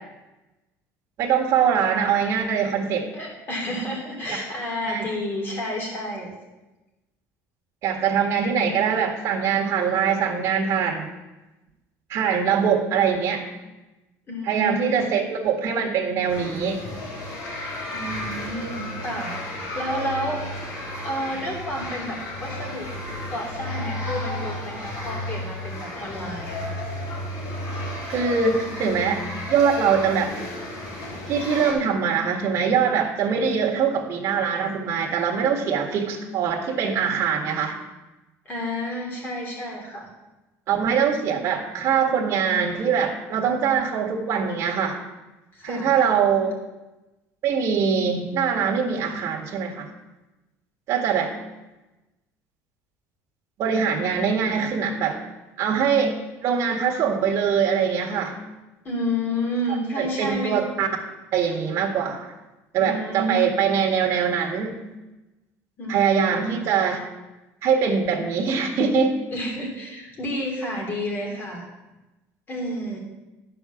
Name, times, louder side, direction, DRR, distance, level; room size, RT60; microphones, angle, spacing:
voice 1, 1.2-3.1 4.9-5.0 7.8-11.1 12.1-13.5 14.4-16.8 28.1-30.3 31.3-37.8 40.7-45.0 45.6-46.6 47.4-49.9 50.9-51.3 53.6-55.2 55.6-56.1 56.4-58.4 60.0-60.9 61.3-62.3 62.7-64.7 65.9-67.1 67.6-69.2, right 7 dB, 45° right, -1 dB, 1.7 m, -23 dB
voice 2, 3.1-6.3 14.3-15.2 17.9-20.4 21.0-22.9 23.3-26.6 38.4-40.1 45.5-46.1 58.8-60.6 62.8-63.6 65.8-66.6 69.3-71.7 72.5-73.0, equal, 30° left, 0 dB, 3.1 m, -30 dB
sound 1, 16.3-31.7, left 1 dB, 65° left, 3.7 m, -33 dB
12.0 x 4.9 x 7.1 m, 1.1 s
cardioid pair, 140°, 7 cm